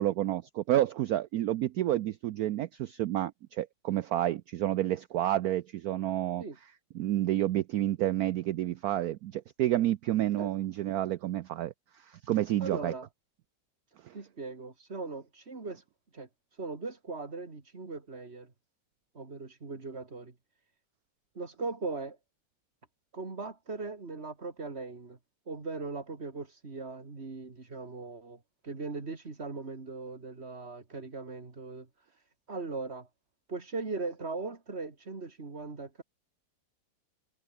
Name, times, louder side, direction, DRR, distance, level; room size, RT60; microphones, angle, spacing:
voice 1, 0.0-6.4 6.9-12.9 14.0-14.1, right 13 dB, 70° right, 0.9 m, -30 dB
voice 2, 12.6-13.1 14.1-15.8 16.1-16.3 16.6-18.5 19.1-20.3 21.3-22.2 23.1-25.2 25.5-31.9 32.5-33.1 33.5-36.0, right 3 dB, 35° right, 2.9 m, -39 dB
omnidirectional pair, 2.0 m